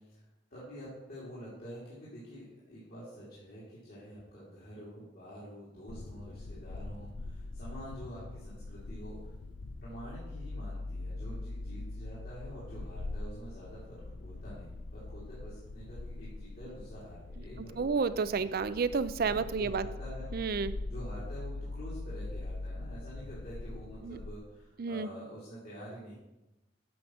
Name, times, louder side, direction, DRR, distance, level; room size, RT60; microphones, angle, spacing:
voice 1, 0.0-9.3 9.8-18.1 19.4-20.6 20.9-26.1, equal, 50° left, -9 dB, 2.8 m, -47 dB
sound 1, 5.9-24.4, left 2 dB, 65° left, 0.5 m, -42 dB
voice 2, 17.6-19.9 20.3-20.8 24.0-24.2 24.8-25.1, right 5 dB, 50° right, 14 dB, 0.4 m, -31 dB
9.3 x 5.1 x 6.2 m, 0.99 s
head